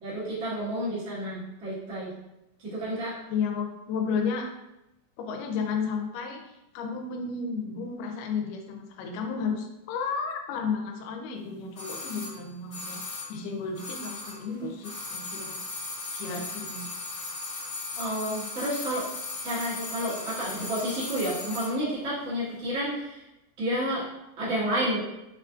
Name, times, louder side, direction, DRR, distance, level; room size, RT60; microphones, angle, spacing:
voice 1, 0.0-2.1 2.6-3.1 18.0-19.1 19.4-23.2 23.6-24.1 24.4-25.0, equal, 65° right, -10 dB, 0.7 m, -30 dB
voice 2, 3.3-4.5 5.2-15.6 16.1-17.0, left 5 dB, 90° left, 4 dB, 2.2 m, -33 dB
sound 1, 11.7-14.5 14.8-21.8 22.0-22.1, left 3 dB, 70° left, 1.0 m, -37 dB
4.9 x 2.5 x 2.3 m, 0.92 s
omnidirectional pair, 3.7 m